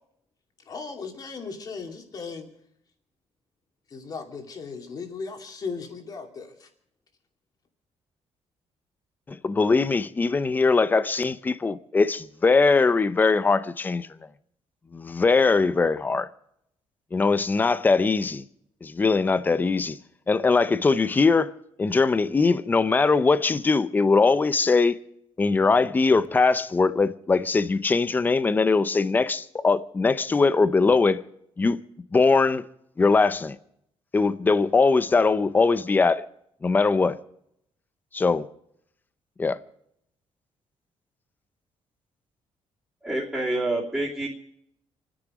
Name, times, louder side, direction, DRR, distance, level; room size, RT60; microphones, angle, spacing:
voice 1, 0.7-2.5 3.9-6.7, left 4 dB, 35° left, 2.6 m, -37 dB
voice 2, 9.3-14.1 14.9-16.3 17.1-18.4 18.8-20.0 20.3-21.5 21.8-25.0 25.4-31.2 31.6-31.8 32.1-32.6 33.0-33.6 34.1-36.2 36.6-37.2 38.1-38.5 39.4-39.6, left 4 dB, 15° left, 0.6 m, -21 dB
voice 3, 43.0-44.3, right 2 dB, 5° right, 3.0 m, -27 dB
28.0 x 10.0 x 5.0 m
cardioid pair, 180°, 11 cm